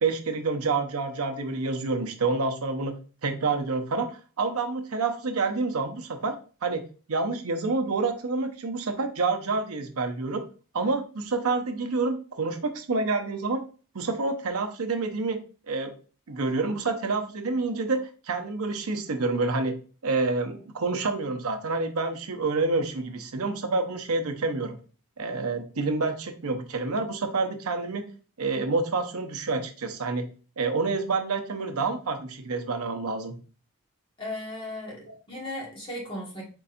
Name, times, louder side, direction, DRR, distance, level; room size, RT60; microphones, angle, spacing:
voice 1, 0.0-2.9 3.2-6.3 6.6-6.8 7.1-10.4 10.7-13.6 13.9-15.4 15.7-15.9 16.3-19.8 20.0-24.8 25.2-28.0 28.4-30.3 30.6-33.4 35.0-35.1, right 3 dB, 80° right, 6 dB, 0.7 m, -28 dB
voice 2, 34.2-36.4, left 1 dB, 25° left, -4 dB, 1.7 m, -36 dB
4.5 x 4.2 x 2.6 m, 0.38 s
head